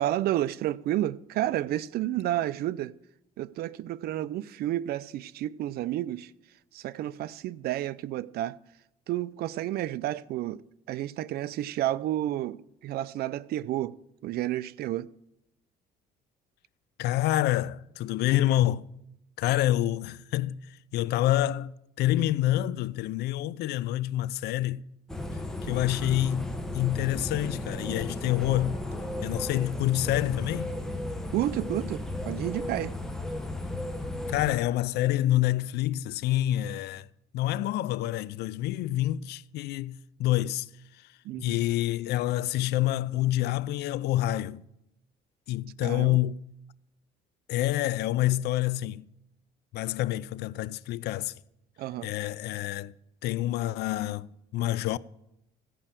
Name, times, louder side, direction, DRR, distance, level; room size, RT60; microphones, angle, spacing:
voice 1, 0.0-2.9 3.4-6.3 6.7-8.6 9.1-10.6 10.9-13.9 14.2-15.1 31.3-32.9 41.2-41.6 45.8-46.2 51.8-52.1, right 13 dB, 65° right, 0.5 m, -31 dB
voice 2, 17.0-18.9 19.4-24.8 25.6-28.8 29.2-30.7 34.3-37.1 37.3-40.7 41.4-44.6 45.5-46.4 47.5-49.1 49.7-51.3 52.0-52.9 53.2-55.0, left 14 dB, 75° left, 0.5 m, -27 dB
sound 1, 25.1-34.6, left 1 dB, 5° left, 1.2 m, -35 dB
15.0 x 5.4 x 7.4 m
cardioid pair, 110°, 17 cm